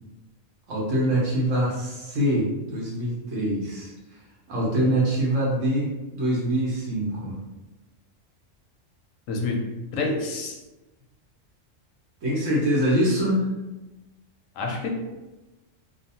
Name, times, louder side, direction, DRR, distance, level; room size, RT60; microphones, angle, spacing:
voice 1, 0.7-3.9 4.5-7.4 12.2-13.5, right 1 dB, 75° right, -5 dB, 1.3 m, -24 dB
voice 2, 9.9-10.6 14.6-14.9, left 3 dB, 85° left, 1 dB, 1.0 m, -27 dB
3.0 x 2.0 x 2.7 m, 1.1 s
omnidirectional pair, 1.3 m